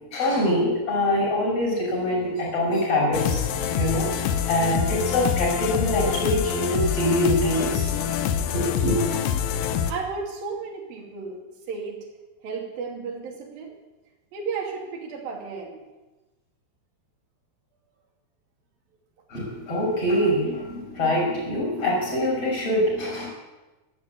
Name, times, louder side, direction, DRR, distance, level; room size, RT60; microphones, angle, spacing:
voice 1, 0.1-3.5 3.7-7.9 8.5-9.1 19.3-23.3, left 1 dB, 40° left, -3 dB, 7.4 m, -24 dB
sound 1, 3.1-9.9, left 8 dB, 75° left, 2.6 m, -26 dB
voice 2, 9.7-11.4 11.7-12.0 12.4-13.8 14.3-15.8, right 5 dB, 70° right, 1 dB, 4.5 m, -33 dB
14.0 x 11.5 x 8.6 m, 1.1 s
omnidirectional pair, 4.3 m